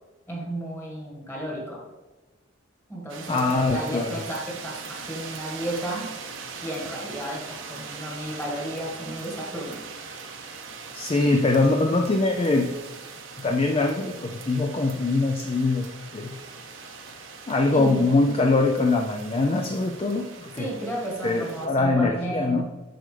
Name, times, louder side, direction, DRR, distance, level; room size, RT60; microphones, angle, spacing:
voice 1, 0.3-1.9 2.9-6.1 6.6-9.8 17.7-18.0 20.6-22.6, right 1 dB, 10° left, -3 dB, 1.8 m, -33 dB
sound 1, 3.1-21.7, right 5 dB, 80° right, 0.8 m, -41 dB
voice 2, 3.3-4.2 10.9-12.7 13.4-16.3 17.5-20.7 21.2-22.6, left 3 dB, 30° left, 3 dB, 0.4 m, -23 dB
7.7 x 6.3 x 3.4 m, 1.1 s
head